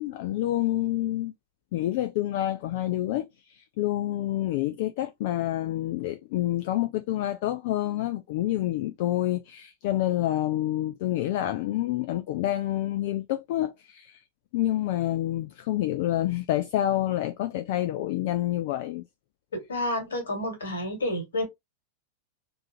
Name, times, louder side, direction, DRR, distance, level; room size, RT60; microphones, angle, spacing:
voice 1, 0.0-1.3 1.7-14.2 14.5-19.0, left 14 dB, 50° left, 0.3 m, -28 dB
voice 2, 19.5-21.4, left 1 dB, 65° left, 1.5 m, -30 dB
3.4 x 2.5 x 2.8 m
figure-of-eight pair, 90°, 0 cm